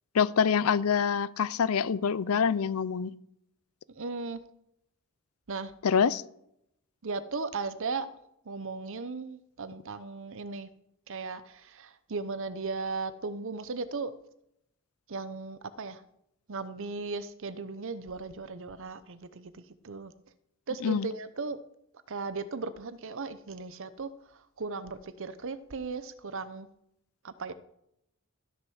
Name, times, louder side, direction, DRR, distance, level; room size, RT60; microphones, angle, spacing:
voice 1, 0.1-3.1 5.8-6.2 20.8-21.1, left 6 dB, 75° left, 19 dB, 0.5 m, -26 dB
voice 2, 3.9-4.4 5.5-5.7 7.0-8.1 8.5-10.7 11.1-14.1 15.1-16.0 16.5-20.1 20.7-21.6 22.1-24.1 24.6-26.7 27.2-27.5, right 4 dB, 65° right, 13 dB, 0.8 m, -36 dB
14.0 x 6.6 x 6.3 m, 0.78 s
head